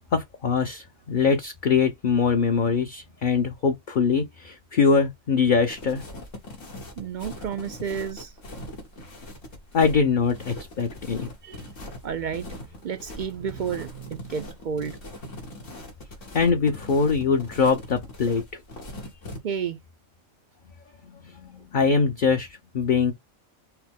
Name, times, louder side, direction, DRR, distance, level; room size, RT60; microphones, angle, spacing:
voice 1, 0.1-6.0 9.7-11.3 16.3-18.4 21.7-22.5 22.7-23.1, left 5 dB, 50° left, 0.7 m, -22 dB
sound 1, 5.7-19.4, left 1 dB, 90° left, 1.7 m, -41 dB
voice 2, 7.0-8.3 11.4-11.7 12.0-12.5 12.8-15.0 19.4-19.8, right 7 dB, 65° right, 0.4 m, -31 dB
5.7 x 2.0 x 3.6 m
omnidirectional pair, 1.3 m